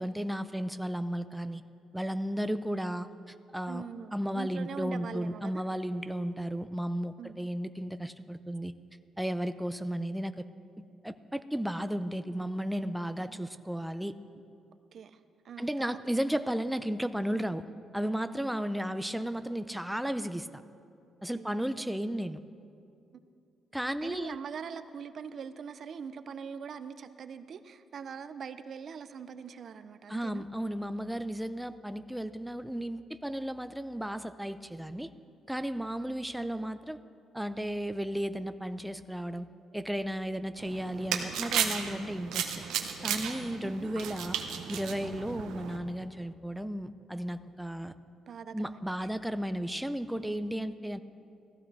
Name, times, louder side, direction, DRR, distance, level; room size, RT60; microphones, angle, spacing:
voice 1, 0.0-1.6 1.9-3.8 4.1-8.7 9.2-10.5 11.0-14.2 15.6-17.6 17.9-20.6 21.2-22.4 23.7-24.4 30.1-35.1 35.5-37.0 37.3-39.5 39.7-42.6 43.0-44.4 44.7-47.9 48.5-51.0, equal, 5° right, 11 dB, 0.4 m, -34 dB
voice 2, 3.7-5.6 7.2-7.4 13.2-13.4 14.9-15.2 15.4-16.0 21.3-21.9 23.1-23.2 24.0-30.4 43.6-43.9 48.3-49.1, right 6 dB, 55° right, 12 dB, 0.5 m, -43 dB
sound 1, 40.6-45.8, right 8 dB, 90° right, 0.9 m, -34 dB
16.0 x 14.0 x 3.4 m, 2.5 s
cardioid pair, 90°, 0 cm